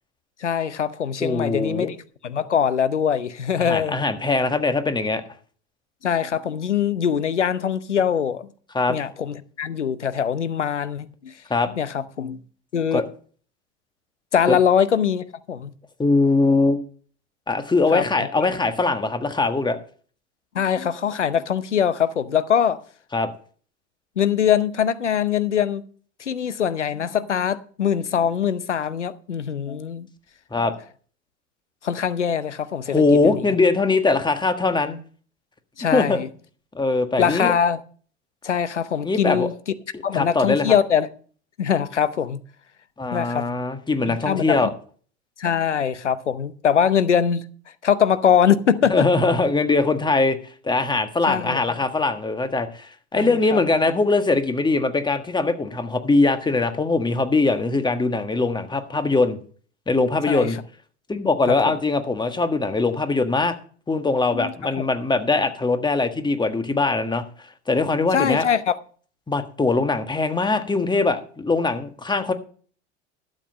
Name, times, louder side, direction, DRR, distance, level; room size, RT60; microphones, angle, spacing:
voice 1, 0.4-2.0 2.2-4.0 6.0-8.5 8.9-11.3 11.8-12.4 12.7-13.0 14.3-15.7 17.9-18.5 20.5-22.8 24.2-25.8 26.2-30.1 31.8-33.6 35.8-36.3 37.2-37.8 38.4-39.5 40.0-41.1 41.6-42.4 43.1-43.5 44.1-44.7 45.4-47.4 47.8-49.1 51.3-51.6 53.1-53.6 60.3-60.5 61.5-61.7 64.3-64.9 68.1-68.8, left 8 dB, 90° left, 0.8 m, -22 dB
voice 2, 1.2-1.9 3.6-5.2 8.7-9.0 11.5-11.7 12.9-13.0 14.5-14.6 16.0-16.8 17.5-19.8 23.1-23.3 30.5-30.7 32.9-35.0 35.9-36.2 36.7-37.5 39.0-39.5 39.9-40.7 43.0-44.7 48.9-50.4 50.6-59.4 59.9-60.6 61.1-63.5 63.9-67.2 67.7-68.5 69.3-72.3, left 3 dB, 15° left, 1.5 m, -21 dB
12.0 x 7.8 x 5.1 m
hypercardioid pair, 75°, 34 cm